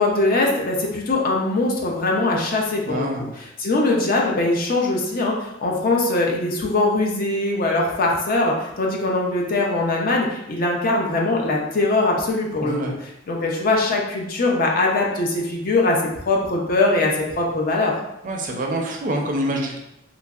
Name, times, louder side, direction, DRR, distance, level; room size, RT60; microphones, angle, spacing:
voice 1, 0.0-12.9 13.3-16.0 16.3-17.9, left 2 dB, 50° left, -1 dB, 0.5 m, -21 dB
voice 2, 2.9-3.3 12.6-12.9 18.2-19.8, right 1 dB, 45° right, 1 dB, 0.4 m, -26 dB
2.9 x 2.5 x 2.3 m, 0.85 s
head